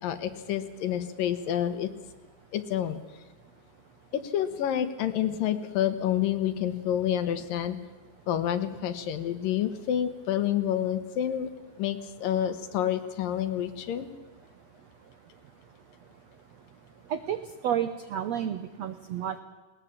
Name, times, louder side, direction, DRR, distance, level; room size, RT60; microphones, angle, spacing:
voice 1, 0.0-1.9 2.5-3.0 4.1-7.8 8.3-11.5 11.8-14.1, left 10 dB, 70° left, 11 dB, 2.8 m, -28 dB
voice 2, 17.1-19.4, right 9 dB, 75° right, 10 dB, 1.5 m, -31 dB
20.0 x 19.5 x 8.7 m, 1.3 s
omnidirectional pair, 4.3 m